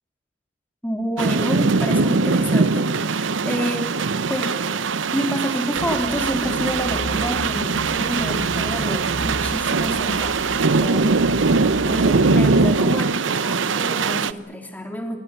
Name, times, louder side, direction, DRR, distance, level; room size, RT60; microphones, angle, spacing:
voice 1, 0.8-4.0 4.3-4.6 5.1-11.2 11.6-15.2, equal, 10° left, 4 dB, 3.3 m, -28 dB
sound 1, 1.2-14.3, right 4 dB, 90° right, 0.8 m, -21 dB
sound 2, 5.7-12.8, equal, 35° left, 1.8 m, -35 dB
27.0 x 22.0 x 7.4 m, 1.1 s
head